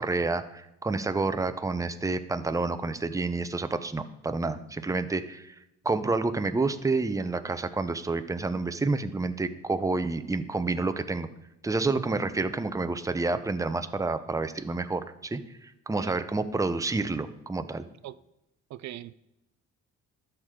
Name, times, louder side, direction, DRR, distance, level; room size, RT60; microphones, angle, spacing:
voice 1, 0.0-5.5 5.8-11.3 11.6-15.4 15.9-17.8, right 3 dB, 10° right, 10 dB, 0.6 m, -29 dB
voice 2, 18.7-19.1, right 14 dB, 70° right, 15 dB, 0.4 m, -40 dB
12.5 x 6.7 x 3.7 m, 0.90 s
cardioid pair, 90°, 30 cm